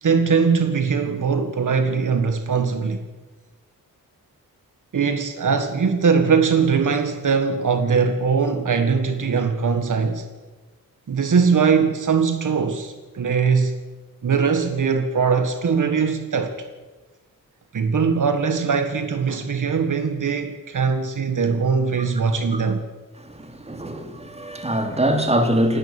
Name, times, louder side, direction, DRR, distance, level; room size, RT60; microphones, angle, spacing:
voice 1, 0.0-3.0 4.9-10.3 11.1-13.8 14.2-16.7 17.7-22.8, right 5 dB, 65° right, 1.7 m, -21 dB
voice 2, 23.2-25.8, right 1 dB, 20° right, 2.7 m, -23 dB
28.0 x 11.0 x 8.8 m
wide cardioid pair, 110°, 34 cm